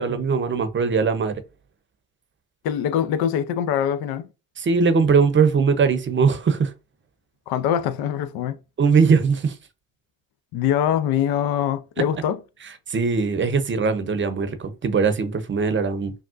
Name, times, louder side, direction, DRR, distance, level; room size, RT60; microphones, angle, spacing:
voice 1, 0.0-1.4 4.6-6.7 8.8-9.5 12.9-16.1, right 5 dB, 30° right, 0.7 m, -20 dB
voice 2, 2.6-4.3 7.5-8.6 10.5-12.4, left 9 dB, 70° left, 0.5 m, -23 dB
3.5 x 2.3 x 2.4 m
supercardioid pair, 70°, 38 cm